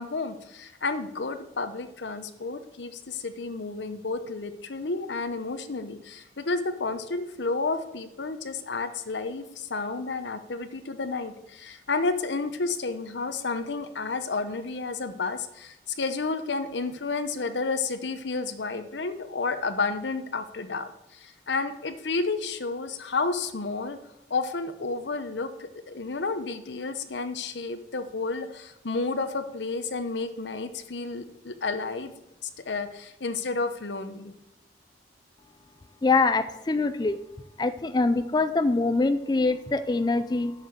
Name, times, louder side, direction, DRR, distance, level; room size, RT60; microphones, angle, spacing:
voice 1, 0.0-24.0 24.3-32.1 32.7-34.3, left 3 dB, 85° left, 10 dB, 0.8 m, -31 dB
voice 2, 36.0-37.2 37.6-40.5, left 3 dB, 25° left, 11 dB, 0.3 m, -24 dB
7.8 x 6.7 x 6.6 m, 0.92 s
head